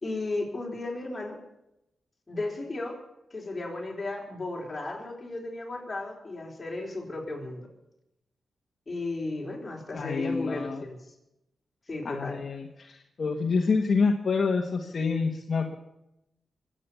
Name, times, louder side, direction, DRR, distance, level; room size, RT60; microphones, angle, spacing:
voice 1, 0.0-1.4 2.3-3.0 3.3-7.7 8.9-11.0 11.9-12.4, left 2 dB, 25° left, -1 dB, 4.4 m, -34 dB
voice 2, 9.9-10.8 12.0-15.8, left 4 dB, 55° left, 2 dB, 1.4 m, -27 dB
23.0 x 8.8 x 7.0 m, 0.87 s
wide cardioid pair, 115°, 0 cm